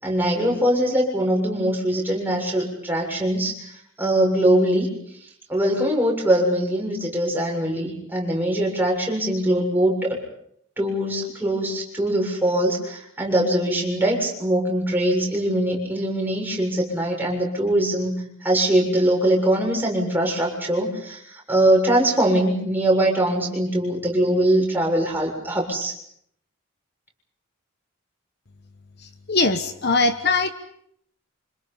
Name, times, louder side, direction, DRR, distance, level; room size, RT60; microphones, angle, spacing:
voice 1, 0.0-3.5 4.0-4.9 5.5-10.1 10.8-18.1 18.4-21.2 21.5-25.9, right 1 dB, 10° right, -2 dB, 7.1 m, -22 dB
voice 2, 29.3-30.5, left 3 dB, 50° left, 9 dB, 1.3 m, -20 dB
29.5 x 27.0 x 5.7 m, 0.70 s
head